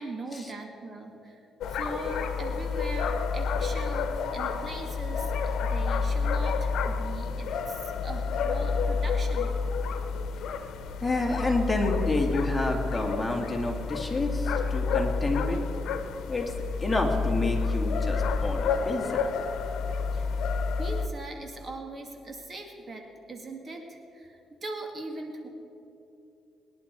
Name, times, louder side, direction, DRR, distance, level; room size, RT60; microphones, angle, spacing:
voice 1, 0.0-1.4 1.7-9.5 20.1-20.3 20.8-25.5, right 2 dB, 40° right, 3 dB, 2.1 m, -40 dB
sound 1, 1.6-21.1, left 5 dB, 75° left, 1.1 m, -29 dB
voice 2, 11.0-15.6 16.3-16.5 16.8-19.3, left 2 dB, 15° left, 1 dB, 2.5 m, -29 dB
22.5 x 10.5 x 4.7 m, 2.9 s
cardioid pair, 90°, 0 cm